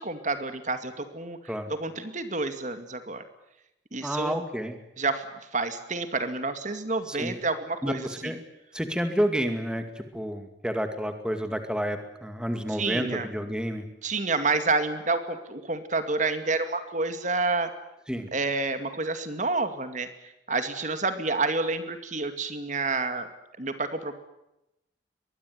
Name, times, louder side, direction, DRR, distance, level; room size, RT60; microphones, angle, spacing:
voice 1, 0.0-1.4 1.7-3.2 3.9-4.4 5.0-5.2 5.5-8.3 12.7-13.3 14.0-17.7 18.3-20.1 20.5-23.3 23.6-24.1, right 3 dB, 45° right, 9 dB, 2.3 m, -29 dB
voice 2, 4.0-4.8 7.1-7.4 7.8-8.4 8.7-13.9 18.1-18.3, equal, 5° right, 7 dB, 2.2 m, -30 dB
24.0 x 21.0 x 9.5 m, 0.89 s
head